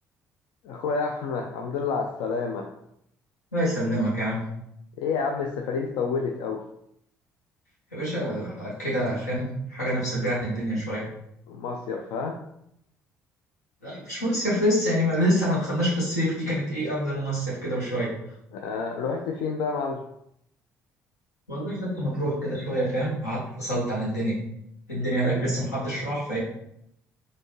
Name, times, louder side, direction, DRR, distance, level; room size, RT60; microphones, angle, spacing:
voice 1, 0.6-2.7 5.0-6.6 11.5-12.4 18.5-20.0 25.2-25.5, left 5 dB, 60° left, 2 dB, 0.4 m, -29 dB
voice 2, 3.5-4.5 7.9-11.1 13.8-18.1 21.5-24.4 24.9-26.4, equal, 80° left, -7 dB, 1.4 m, -26 dB
4.1 x 2.7 x 3.1 m, 0.76 s
figure-of-eight pair, 50°, 9 cm